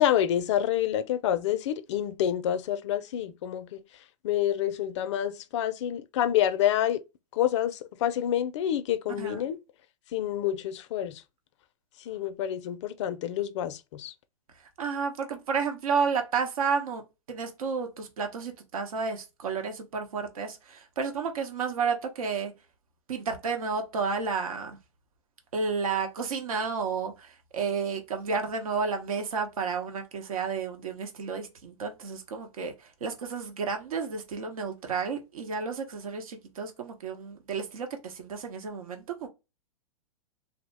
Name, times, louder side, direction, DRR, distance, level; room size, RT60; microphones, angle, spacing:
voice 1, 0.0-3.8 4.2-7.0 7.3-9.6 10.1-11.2 12.1-14.1, left 11 dB, 55° left, 0.4 m, -28 dB
voice 2, 14.8-17.0 17.3-22.5 23.1-24.8 25.5-32.7 33.0-39.3, right 5 dB, 80° right, 0.9 m, -31 dB
2.8 x 2.1 x 3.2 m
hypercardioid pair, 140°, 18 cm